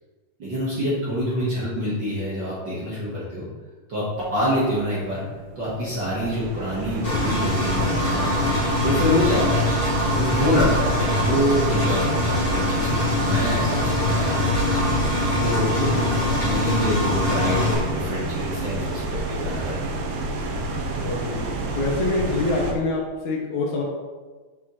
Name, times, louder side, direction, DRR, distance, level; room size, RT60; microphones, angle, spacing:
voice 1, 0.4-3.5 3.9-5.2 5.6-8.5 8.8-9.7 10.1-14.3 15.4-15.8 16.2-20.0, equal, 45° right, -8 dB, 1.7 m, -26 dB
sound 1, 4.2-22.7, right 2 dB, 85° right, 2.5 m, -29 dB
Engine, 7.0-17.7, left 2 dB, 20° left, 2.0 m, -23 dB
voice 2, 21.0-21.5 21.8-23.8, left 2 dB, 65° left, -2 dB, 2.4 m, -25 dB
7.5 x 6.8 x 3.2 m, 1.3 s
omnidirectional pair, 3.8 m